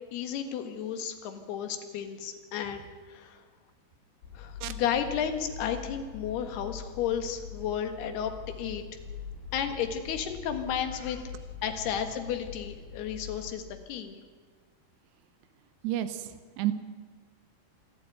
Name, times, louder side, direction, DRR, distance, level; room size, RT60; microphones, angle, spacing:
voice 1, 0.1-3.4 4.4-8.3 8.6-8.8 9.5-11.3 11.6-13.6 13.9-14.2, left 8 dB, 75° left, 6 dB, 3.6 m, -33 dB
sound 1, 4.2-13.5, left 7 dB, 60° left, 3.9 m, -43 dB
voice 2, 15.8-16.7, right 13 dB, 90° right, 10 dB, 3.0 m, -31 dB
27.0 x 12.0 x 9.3 m, 1.5 s
omnidirectional pair, 4.7 m